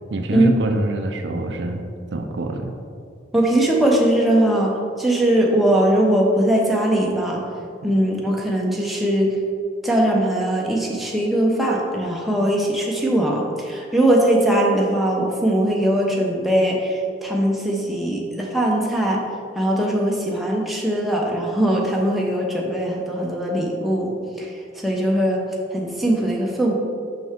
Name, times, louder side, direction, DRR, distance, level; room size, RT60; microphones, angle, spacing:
voice 1, 0.1-1.8 2.1-2.7, right 2 dB, 65° right, 5 dB, 0.5 m, -25 dB
voice 2, 3.3-7.4 7.8-9.3 9.8-19.2 19.6-24.5 24.8-25.4 25.7-26.7, right 1 dB, ahead, -3 dB, 0.7 m, -20 dB
6.0 x 5.6 x 3.6 m, 2.4 s
head